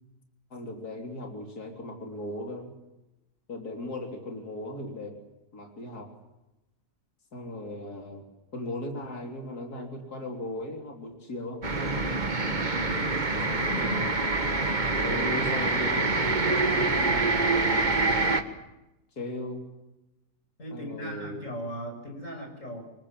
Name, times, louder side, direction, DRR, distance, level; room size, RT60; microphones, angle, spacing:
voice 1, 0.5-2.7 3.5-5.2 5.5-6.1 7.3-8.2 8.5-12.2 13.5-14.6 15.0-17.9 19.1-19.6 20.7-21.5, left 1 dB, 60° left, 2 dB, 3.8 m, -37 dB
sound 1, 11.6-18.4, right 3 dB, 25° right, 1.7 m, -26 dB
voice 2, 12.7-14.0 20.6-22.8, equal, 45° left, 4 dB, 6.8 m, -38 dB
27.0 x 23.5 x 7.6 m, 0.97 s
omnidirectional pair, 1.8 m